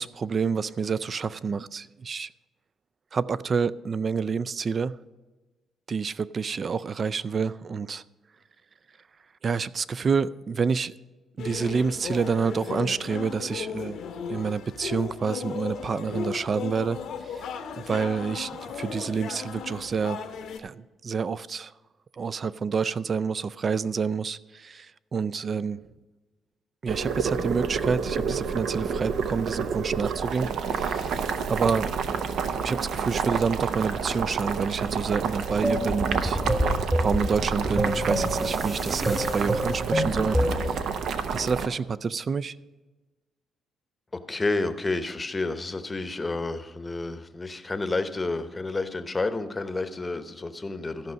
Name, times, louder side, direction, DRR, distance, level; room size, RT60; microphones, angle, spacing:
voice 1, 0.0-2.3 3.1-5.0 5.9-8.0 9.4-10.9 11.4-14.0 14.3-17.0 17.3-17.4 17.8-20.2 20.6-21.7 22.2-25.8 26.8-31.2 31.5-31.9 32.6-36.4 37.0-40.4 41.3-42.5, right 5 dB, 45° right, 17 dB, 0.3 m, -28 dB
sound 1, 11.4-20.6, left 6 dB, 75° left, 0.9 m, -36 dB
Boiling, 26.9-41.7, right 6 dB, 75° right, 0.7 m, -29 dB
sound 2, 35.6-40.8, equal, 15° right, 1.3 m, -27 dB
voice 2, 44.1-51.1, left 3 dB, 20° left, 10 dB, 0.8 m, -30 dB
13.5 x 5.5 x 6.3 m, 1.2 s
cardioid pair, 90°, 0 cm